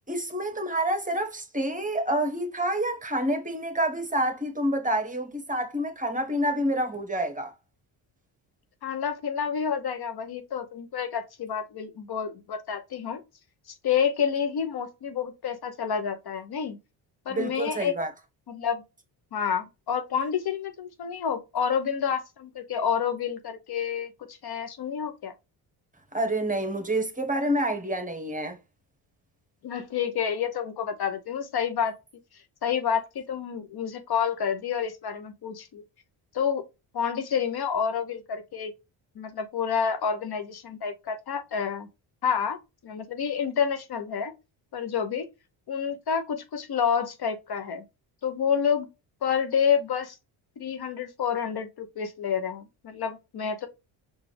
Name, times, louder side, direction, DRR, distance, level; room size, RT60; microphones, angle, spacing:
voice 1, 0.1-7.5 17.3-18.1 26.1-28.6, right 1 dB, 15° right, 1.3 m, -28 dB
voice 2, 8.8-13.2 13.8-16.8 17.3-17.9 18.5-18.8 19.3-24.1 24.4-25.3 29.6-32.0 32.6-35.8 36.3-36.6 36.9-38.7 39.2-41.9 42.2-42.6 42.8-44.3 44.7-45.3 45.7-47.8 48.2-48.9 49.2-50.2 50.6-53.7, left 7 dB, 50° left, 1.0 m, -29 dB
4.8 x 2.7 x 3.3 m
supercardioid pair, 70°, 50 cm